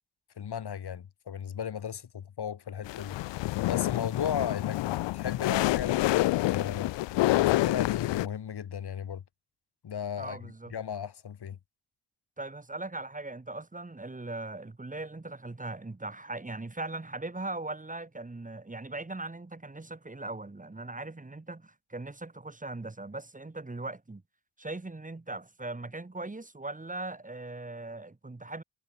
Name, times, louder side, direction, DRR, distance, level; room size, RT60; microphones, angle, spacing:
voice 1, 0.4-3.2 3.6-6.9 7.3-9.2 9.8-11.6, left 8 dB, 65° left, 5.9 m, -36 dB
sound 1, 2.8-8.3, left 17 dB, 85° left, 0.5 m, -27 dB
voice 2, 10.2-10.7 12.4-24.2 24.6-28.6, right 2 dB, 20° right, 3.3 m, -39 dB
cardioid pair, 95°, 42 cm